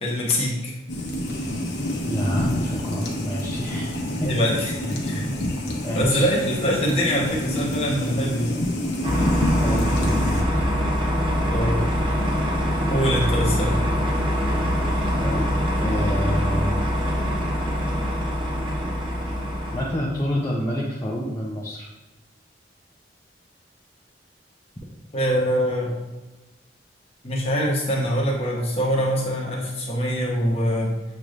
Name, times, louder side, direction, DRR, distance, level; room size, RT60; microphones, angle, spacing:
voice 1, 0.0-0.7 4.2-5.3 5.9-8.6 11.5-11.9 12.9-13.8 25.1-26.0 27.2-31.0, equal, 35° left, -2 dB, 0.9 m, -24 dB
sound 1, 0.9-10.4, left 1 dB, 75° left, 0.8 m, -27 dB
voice 2, 2.1-3.9 4.2-4.4 4.8-5.2 5.8-6.3 9.6-10.2 15.2-15.5 15.7-16.8 19.7-21.9, equal, 15° left, -6 dB, 0.5 m, -28 dB
sound 2, 9.0-20.0, equal, 30° right, 0.7 m, -23 dB
6.7 x 3.2 x 2.5 m, 1.1 s
head